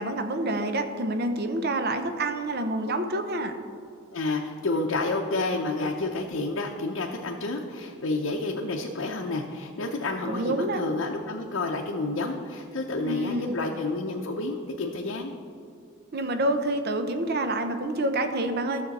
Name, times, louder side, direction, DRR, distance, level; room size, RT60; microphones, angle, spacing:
voice 1, 0.0-3.5 10.2-10.8 13.0-13.6 16.1-18.8, right 1 dB, 55° right, 7 dB, 0.8 m, -27 dB
voice 2, 4.1-15.3, left 2 dB, 80° left, 0 dB, 0.7 m, -30 dB
13.5 x 6.8 x 4.1 m, 2.5 s
head